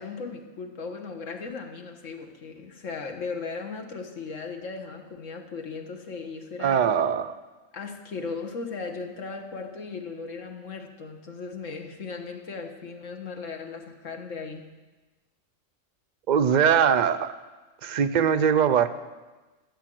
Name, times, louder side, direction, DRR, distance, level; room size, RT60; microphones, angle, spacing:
voice 1, 0.0-6.9 7.7-14.7, left 4 dB, 70° left, 4 dB, 1.6 m, -37 dB
voice 2, 6.6-7.4 16.3-17.3 17.8-18.9, right 7 dB, 50° right, 11 dB, 0.6 m, -21 dB
14.0 x 7.6 x 7.6 m, 1.2 s
omnidirectional pair, 1.3 m